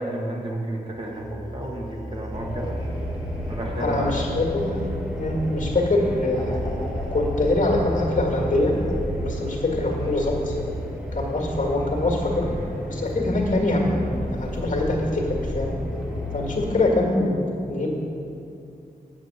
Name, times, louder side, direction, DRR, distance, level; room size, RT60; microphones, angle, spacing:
voice 1, 0.0-2.8 3.5-4.2, right 1 dB, 30° right, -1 dB, 1.3 m, -31 dB
sound 1, 0.9-14.1 15.9-16.5, equal, 25° left, 1.4 m, -37 dB
sound 2, 2.3-16.8, equal, 10° right, 1.3 m, -32 dB
voice 2, 3.8-4.8 5.2-6.6 7.1-8.7 9.2-10.5 11.1-12.5 12.9-15.7 16.3-17.3 17.7-17.9, left 2 dB, 55° left, -1 dB, 1.9 m, -24 dB
7.6 x 6.5 x 8.0 m, 2.6 s
wide cardioid pair, 110°, 16 cm